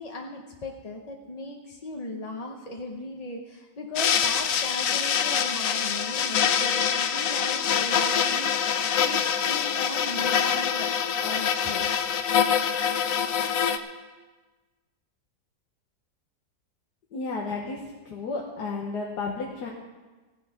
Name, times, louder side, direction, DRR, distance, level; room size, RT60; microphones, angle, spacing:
voice 1, 0.0-10.9 11.2-12.2, left 2 dB, 30° left, 0 dB, 0.7 m, -37 dB
sound 1, 3.9-13.8, left 8 dB, 65° left, 1.0 m, -25 dB
voice 2, 17.1-19.7, left 3 dB, 80° left, -1 dB, 1.8 m, -32 dB
15.0 x 10.0 x 5.8 m, 1.3 s
omnidirectional pair, 1.7 m